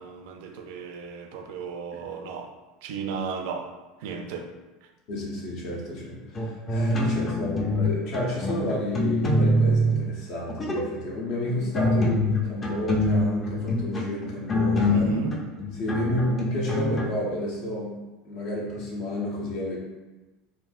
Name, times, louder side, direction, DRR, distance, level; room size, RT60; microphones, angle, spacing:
voice 1, 0.0-2.5 2.8-3.7 4.0-4.5 14.9-15.4, right 5 dB, 70° right, 0.4 m, -34 dB
voice 2, 5.1-15.1 15.8-19.8, left 1 dB, 65° left, 0.9 m, -30 dB
sound 1, 6.3-7.9 8.1-9.9 10.5-10.9 11.5-17.0, left 1 dB, 30° left, 0.6 m, -25 dB
3.7 x 2.0 x 2.4 m
hypercardioid pair, 90°, 0 cm